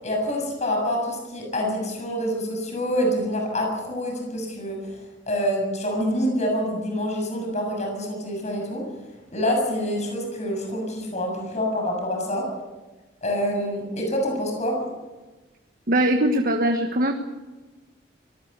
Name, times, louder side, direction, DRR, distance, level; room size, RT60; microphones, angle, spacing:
voice 1, 0.0-5.0 5.3-8.8 9.3-12.5 13.2-14.8, equal, 40° left, 1 dB, 7.3 m, -26 dB
voice 2, 15.9-17.1, right 1 dB, 50° right, 5 dB, 1.4 m, -21 dB
24.5 x 19.0 x 6.8 m, 1.2 s
head